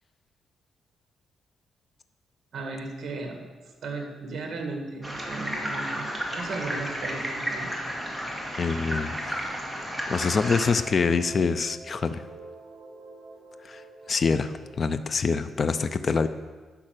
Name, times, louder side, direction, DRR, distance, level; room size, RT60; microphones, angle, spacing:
voice 1, 2.5-3.5 3.8-7.7, right 3 dB, 50° right, 3 dB, 2.0 m, -36 dB
sound 1, 5.0-10.7, equal, ahead, 1.8 m, -32 dB
sound 2, 5.1-10.0 10.4-14.9, right 2 dB, 30° right, 2.0 m, -49 dB
voice 2, 8.6-9.5 10.1-12.2 13.6-13.8 14.1-16.3, left 5 dB, 35° left, 11 dB, 0.5 m, -25 dB
10.5 x 5.7 x 7.6 m, 1.3 s
cardioid pair, 145°, 0 cm